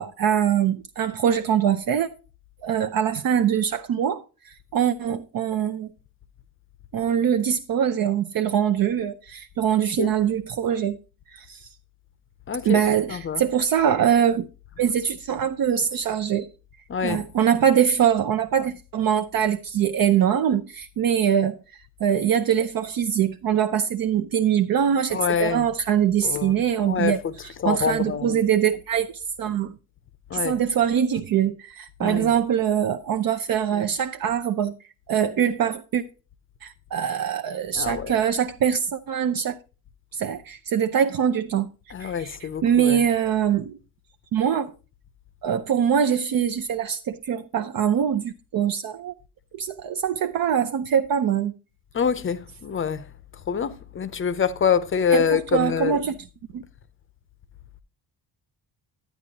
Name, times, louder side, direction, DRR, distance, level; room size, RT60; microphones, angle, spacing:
voice 1, 0.0-2.1 2.6-4.2 4.7-5.9 6.9-11.0 11.4-11.6 12.7-14.5 14.8-16.5 17.0-21.6 22.0-27.2 27.6-29.1 29.4-29.7 30.3-34.7 35.1-36.0 36.6-39.6 40.1-41.7 42.0-42.4 42.6-43.8 44.3-44.7 45.4-49.1 49.5-51.5 55.1-56.2 56.5-56.6, right 8 dB, 60° right, 0.6 m, -23 dB
voice 2, 12.5-12.8 13.1-13.5 16.9-17.2 25.1-25.7 26.2-28.4 30.3-30.6 32.0-32.4 37.7-38.2 41.9-43.0 51.9-53.1 53.3-56.0, left 7 dB, 30° left, 0.5 m, -26 dB
10.0 x 9.3 x 2.8 m
wide cardioid pair, 175°, 39 cm